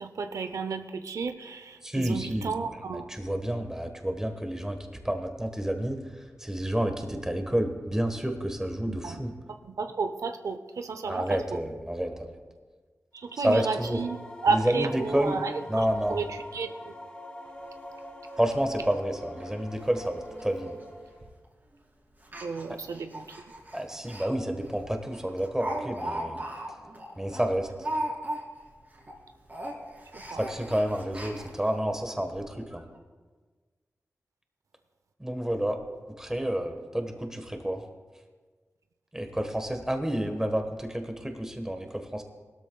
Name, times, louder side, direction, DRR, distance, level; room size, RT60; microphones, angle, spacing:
voice 1, 0.0-1.8 2.0-3.1 8.9-9.2 9.8-11.2 13.4-14.2 14.4-15.5 16.1-16.2 16.5-16.7 22.4-23.2 30.3-30.4, right 4 dB, 90° right, 8 dB, 0.6 m, -31 dB
voice 2, 1.8-4.8 5.0-6.0 6.4-9.3 11.0-12.3 13.4-14.0 14.5-15.4 15.7-16.3 18.4-20.8 23.7-26.4 27.2-27.9 30.4-32.8 35.2-35.8 36.2-37.8 39.1-42.2, right 1 dB, 10° right, 5 dB, 1.3 m, -29 dB
sound 1, 13.2-21.4, left 1 dB, 20° left, 1.7 m, -44 dB
Speech, 17.5-17.6 17.9-18.0 18.4-18.5 18.8-18.9 19.4-19.5 19.8-20.1 20.3-20.4 21.2-21.4 22.2-24.3 24.6-24.8 25.1-28.7 28.9-29.2 29.5-31.7 32.3-32.4 32.7-32.8, right 1 dB, 35° right, 2.5 m, -37 dB
20.0 x 13.0 x 2.3 m, 1.4 s
wide cardioid pair, 100°, 5 cm